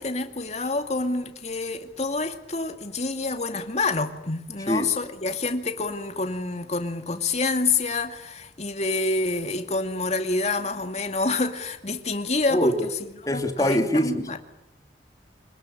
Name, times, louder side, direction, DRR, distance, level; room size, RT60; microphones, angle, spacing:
voice 1, 0.0-12.9 13.3-14.4, left 3 dB, 40° left, 2.3 m, -27 dB
voice 2, 13.3-14.2, equal, 20° left, 2.8 m, -23 dB
26.0 x 20.5 x 9.9 m
head